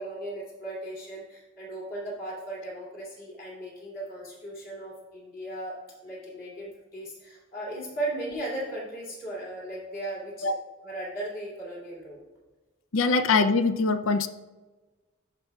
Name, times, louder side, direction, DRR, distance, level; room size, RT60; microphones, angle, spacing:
voice 1, 0.0-5.7 6.0-10.5 10.8-12.2 13.0-13.1, right 1 dB, 45° left, -4 dB, 2.5 m, -37 dB
voice 2, 12.9-14.3, left 4 dB, 80° left, 10 dB, 0.5 m, -23 dB
13.0 x 5.4 x 2.3 m, 1.2 s
head